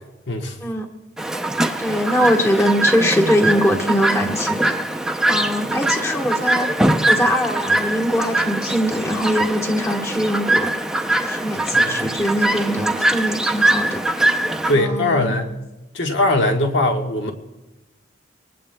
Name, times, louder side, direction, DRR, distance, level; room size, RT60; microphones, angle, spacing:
voice 1, 0.3-0.6 11.7-12.0 14.6-15.6 15.9-17.3, left 1 dB, 75° left, 3 dB, 1.4 m, -20 dB
Chirp tweet, 1.2-14.7, right 1 dB, 5° right, 0.5 m, -22 dB
voice 2, 1.8-4.7 5.3-6.7 7.1-10.8 11.2-14.0 14.7-15.3, equal, 15° left, 1 dB, 1.2 m, -22 dB
23.5 x 19.0 x 2.2 m, 1.0 s
head